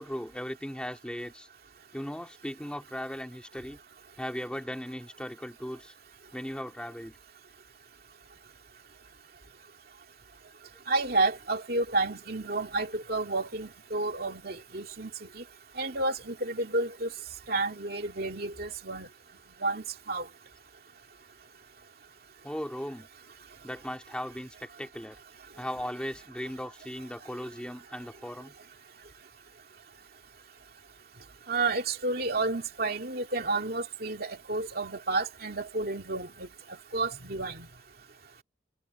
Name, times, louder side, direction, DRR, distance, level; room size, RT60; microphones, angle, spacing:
voice 1, 0.0-1.5 1.9-3.8 4.2-5.9 6.3-7.2 22.4-23.1 23.6-25.2 25.6-28.5, equal, 5° left, 2.9 m, -37 dB
voice 2, 10.9-15.4 15.8-17.1 17.5-19.1 19.6-20.2 31.5-36.5 36.9-37.7, right 3 dB, 50° right, 2.5 m, -31 dB
head